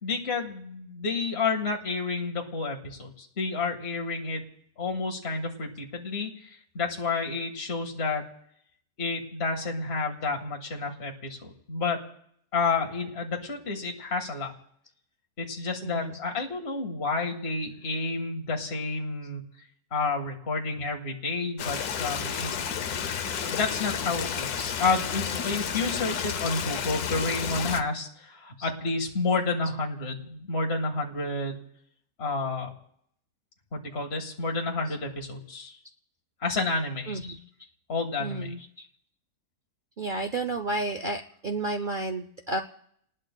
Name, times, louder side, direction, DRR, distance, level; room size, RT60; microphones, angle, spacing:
voice 1, 0.0-4.4 4.8-6.5 6.7-8.3 9.0-12.0 12.5-14.5 15.4-19.4 19.9-22.5 23.5-31.6 32.2-32.7 33.7-35.8 36.4-37.2 37.9-38.5, left 3 dB, 40° left, 1 dB, 1.9 m, -30 dB
Stream, 21.6-27.8, left 7 dB, 70° left, 1.3 m, -31 dB
voice 2, 37.1-37.4 38.2-38.9 40.0-42.6, right 2 dB, 60° right, 6 dB, 0.5 m, -31 dB
30.0 x 19.5 x 2.2 m, 0.70 s
omnidirectional pair, 1.7 m